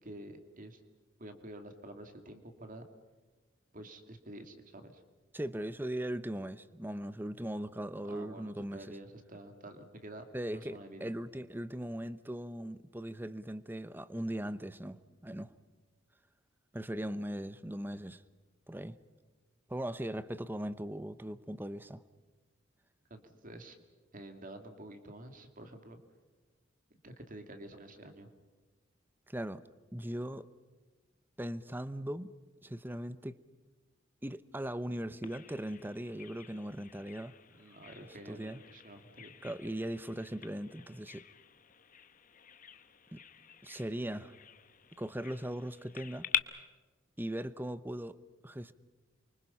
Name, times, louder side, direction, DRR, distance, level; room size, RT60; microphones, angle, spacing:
voice 1, 0.0-0.8 1.2-2.8 3.7-5.0 8.0-11.1 23.1-23.8 24.1-26.0 27.0-28.3 37.5-39.4, right 1 dB, 45° right, 2.5 m, -49 dB
voice 2, 5.3-8.8 10.3-15.5 16.7-18.2 18.7-19.0 19.7-22.0 29.3-29.6 29.9-30.5 31.4-32.3 32.6-33.4 34.2-37.3 38.3-38.6 39.4-41.2 43.1-43.2 43.6-44.3 45.0-46.3 47.2-48.2 48.4-48.7, right 1 dB, 10° right, 0.7 m, -39 dB
Bird vocalization bird call bird song, 35.2-46.4, left 8 dB, 45° left, 1.0 m, -44 dB
29.0 x 24.5 x 5.7 m
head